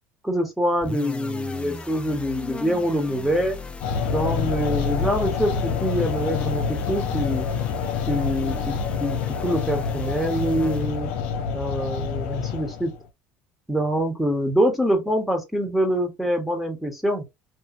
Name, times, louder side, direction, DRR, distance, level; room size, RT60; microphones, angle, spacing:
voice 1, 0.2-3.6 4.1-7.5 8.1-11.1 11.5-12.9 13.7-17.2, equal, ahead, 1.2 m, -25 dB
sound 1, 0.8-11.2, left 4 dB, 20° left, 0.5 m, -37 dB
sound 2, 3.8-13.0, left 6 dB, 80° left, 0.5 m, -27 dB
2.6 x 2.6 x 2.8 m
supercardioid pair, 90°, 6 cm